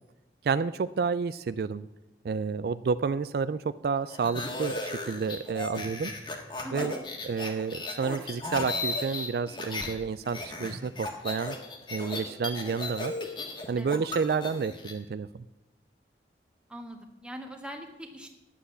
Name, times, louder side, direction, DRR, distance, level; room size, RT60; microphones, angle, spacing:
voice 1, 0.4-1.9 2.2-6.1 6.7-6.9 7.2-11.6 11.9-13.1 13.7-15.3, right 5 dB, 60° right, 14 dB, 0.3 m, -30 dB
sound 1, 4.1-9.9 10.2-14.9, left 2 dB, 25° left, 1.6 m, -36 dB
voice 2, 16.7-18.3, equal, 5° right, 4 dB, 1.3 m, -42 dB
10.0 x 7.8 x 8.2 m, 1.0 s
head